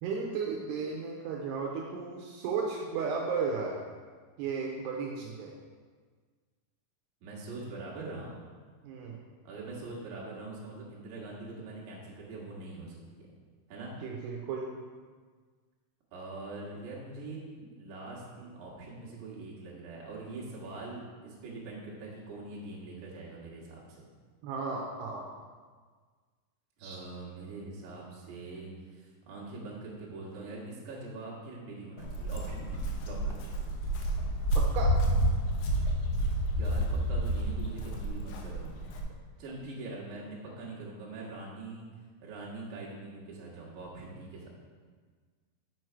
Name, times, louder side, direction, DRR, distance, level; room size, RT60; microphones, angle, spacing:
voice 1, 0.0-3.8 4.4-5.5 8.8-9.2 14.0-14.7 24.4-25.2 26.8-27.0 34.6-35.0, right 5 dB, 80° right, -1 dB, 2.6 m, -34 dB
voice 2, 7.2-8.4 9.4-13.3 13.7-13.9 16.1-17.4 17.7-24.1 26.8-33.5 36.5-38.9 39.4-41.9 42.2-44.5, right 2 dB, 55° right, -5 dB, 2.5 m, -43 dB
Walk footsteps, 32.0-39.0, right 1 dB, 85° left, 3.1 m, -30 dB
6.4 x 6.2 x 4.5 m, 1.5 s
omnidirectional pair, 5.0 m